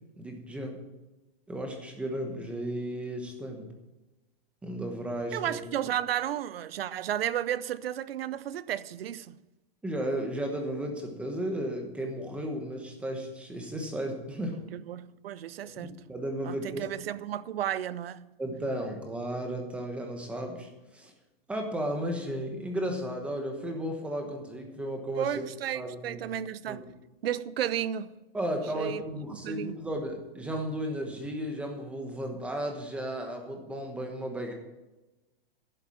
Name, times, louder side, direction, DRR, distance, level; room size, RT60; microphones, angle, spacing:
voice 1, 0.2-0.8 1.5-3.7 4.6-5.7 9.8-14.6 15.8-16.8 18.4-21.1 21.5-25.4 25.7-26.2 26.7-26.8 28.3-34.5, right 1 dB, 5° right, 1.1 m, -34 dB
voice 2, 5.3-9.4 14.7-16.0 16.4-18.3 25.1-26.8 27.2-28.1 28.7-29.0 29.3-29.8, right 11 dB, 75° right, 0.7 m, -33 dB
11.5 x 7.9 x 7.4 m
hypercardioid pair, 170°, 30 cm